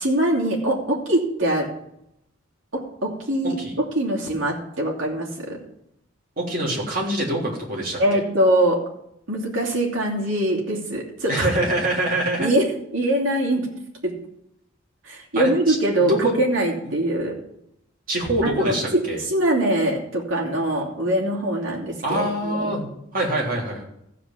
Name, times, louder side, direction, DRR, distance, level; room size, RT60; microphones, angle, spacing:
voice 1, 0.0-1.7 2.7-5.6 8.0-8.8 9.3-11.5 12.4-12.7 12.9-13.7 14.0-14.1 15.0-17.4 18.4-22.7, right 1 dB, 65° right, -2 dB, 2.9 m, -23 dB
voice 2, 6.4-8.2 11.3-12.6 15.3-16.4 16.8-16.9 18.1-19.2 22.0-22.9 23.1-23.8, right 1 dB, 40° right, -3 dB, 3.3 m, -24 dB
15.0 x 5.0 x 7.4 m, 0.78 s
head